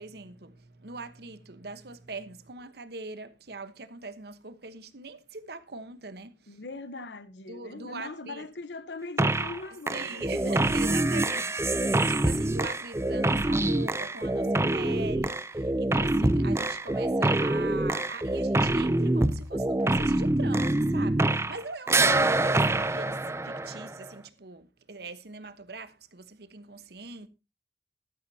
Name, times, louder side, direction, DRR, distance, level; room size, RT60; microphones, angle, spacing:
voice 1, 0.0-6.6 7.5-8.5 9.9-27.3, right 3 dB, 60° right, 1.1 m, -42 dB
voice 2, 6.5-11.0 21.9-22.4, left 3 dB, 75° left, 1.1 m, -41 dB
sound 1, 9.2-9.6 9.9-21.6 21.9-24.1, right 2 dB, 15° right, 0.6 m, -25 dB
14.5 x 12.5 x 2.8 m
head